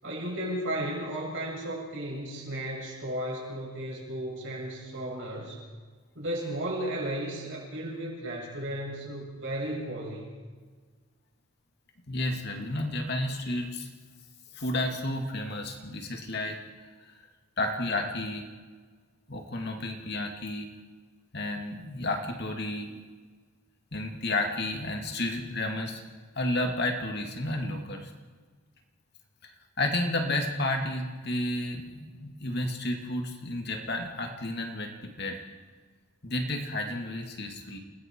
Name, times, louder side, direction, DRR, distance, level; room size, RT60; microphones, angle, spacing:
voice 1, 0.0-5.6 6.1-10.3, right 1 dB, 55° right, -2 dB, 7.8 m, -34 dB
voice 2, 12.1-13.9 14.5-16.6 17.6-18.4 19.3-20.7 21.3-23.0 23.9-26.0 26.3-28.1 29.4-29.5 29.8-35.4 36.2-37.8, left 1 dB, 50° left, 3 dB, 2.6 m, -31 dB
29.5 x 20.5 x 4.8 m, 1.5 s
head